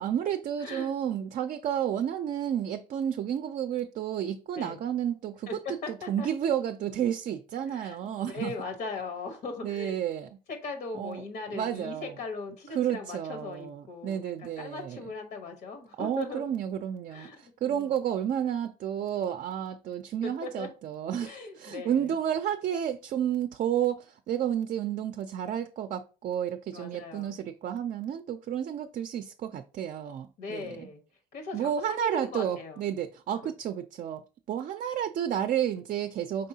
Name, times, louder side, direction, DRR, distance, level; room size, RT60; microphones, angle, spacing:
voice 1, 0.0-8.5 9.6-10.3 10.9-11.2 11.5-12.1 12.7-15.0 16.0-30.9 31.5-36.5, right 9 dB, 50° right, 0.4 m, -31 dB
voice 2, 0.6-0.9 4.5-4.8 5.5-6.3 7.6-10.0 10.5-16.4 17.1-17.4 17.7-17.9 20.2-20.7 21.2-22.1 26.7-27.3 30.4-31.0 31.3-32.8 33.4-33.5, left 3 dB, 70° left, 1.1 m, -39 dB
5.3 x 3.6 x 2.7 m
cardioid pair, 110°, 17 cm